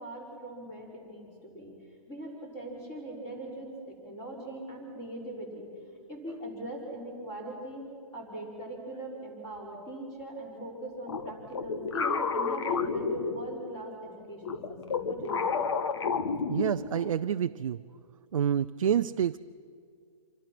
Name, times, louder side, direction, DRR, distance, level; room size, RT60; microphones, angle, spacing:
voice 1, 0.0-1.8 2.1-5.7 6.1-15.7, right 1 dB, 15° left, -1 dB, 4.8 m, -41 dB
sound 1, 11.1-13.8 14.4-17.1, left 5 dB, 50° left, 1.3 m, -31 dB
voice 2, 16.5-17.8 18.3-19.4, right 9 dB, 65° right, 9 dB, 0.5 m, -28 dB
26.5 x 24.0 x 6.1 m, 2.2 s
hypercardioid pair, 175°, 18 cm